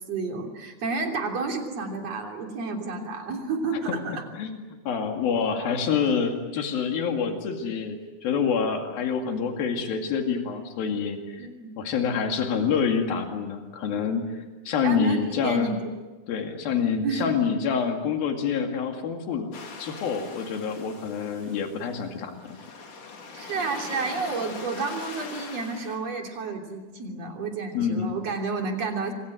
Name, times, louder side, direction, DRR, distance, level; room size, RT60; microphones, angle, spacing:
voice 1, 0.0-4.2 5.5-5.8 11.4-11.7 14.8-15.9 17.0-17.3 23.3-29.1, right 4 dB, 45° right, 2 dB, 4.2 m, -31 dB
voice 2, 3.9-11.4 11.8-15.8 16.3-19.5 19.8-22.6 27.7-28.2, left 6 dB, 85° left, 4 dB, 4.1 m, -27 dB
sound 1, 19.5-26.0, left 4 dB, 60° left, 4.6 m, -41 dB
27.0 x 24.5 x 7.9 m, 1.2 s
omnidirectional pair, 4.1 m